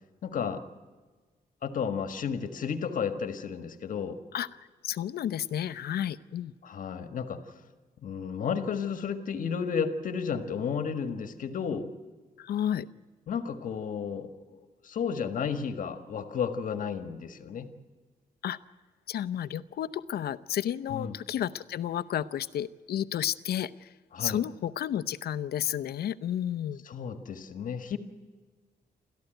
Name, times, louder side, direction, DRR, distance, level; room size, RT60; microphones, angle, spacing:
voice 1, 0.2-0.6 1.6-4.2 6.6-7.4 8.0-11.9 13.3-14.6 14.8-17.7 20.9-21.1 24.1-24.4 26.9-28.0, left 6 dB, 55° left, 9 dB, 1.6 m, -32 dB
voice 2, 4.8-6.5 12.4-12.9 18.4-18.6 19.1-23.9 24.2-26.8, left 10 dB, 85° left, 14 dB, 0.8 m, -31 dB
28.5 x 14.0 x 9.1 m, 1.4 s
wide cardioid pair, 175°, 16 cm